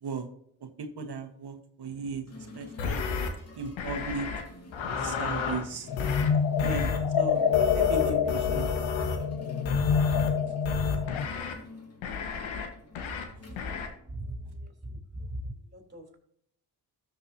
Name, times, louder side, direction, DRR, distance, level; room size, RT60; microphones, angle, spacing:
voice 1, 0.8-2.2 2.5-3.0 3.6-4.3 5.0-5.9 6.6-7.4 7.7-8.7, right 3 dB, 55° right, 6 dB, 1.7 m, -36 dB
sound 1, 2.3-14.5, left 2 dB, 30° left, 2.6 m, -50 dB
sound 2, 2.8-3.3 3.8-4.4 4.7-5.6 6.0-6.3 6.6-7.0 7.5-9.2 9.6-10.3 10.6-11.5 12.0-12.7 13.0-13.2 13.6-13.9, left 4 dB, 85° left, 1.7 m, -32 dB
sound 3, 5.9-11.3, left 7 dB, 60° left, 0.8 m, -26 dB
voice 2, 14.1-16.2, right 1 dB, 20° right, 1 dB, 3.7 m, -40 dB
13.5 x 6.8 x 2.9 m, 0.68 s
supercardioid pair, 60°, 46 cm